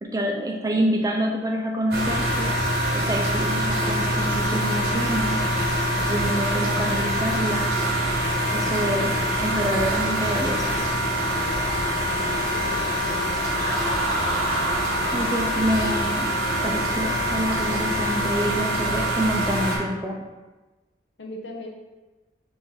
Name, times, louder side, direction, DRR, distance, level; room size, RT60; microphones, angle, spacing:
voice 1, 0.0-2.6 2.9-5.4 6.0-7.7 8.5-10.8 15.1-16.3 16.6-20.2, right 1 dB, 20° right, 1 dB, 0.4 m, -27 dB
sound 1, 1.9-19.8, equal, 60° right, 0.9 m, -24 dB
voice 2, 12.5-13.5 21.2-21.7, left 1 dB, 85° left, 0 dB, 0.7 m, -38 dB
Laughter, 13.5-17.2, right 1 dB, 85° right, 1.2 m, -32 dB
5.6 x 2.6 x 3.1 m, 1.2 s
head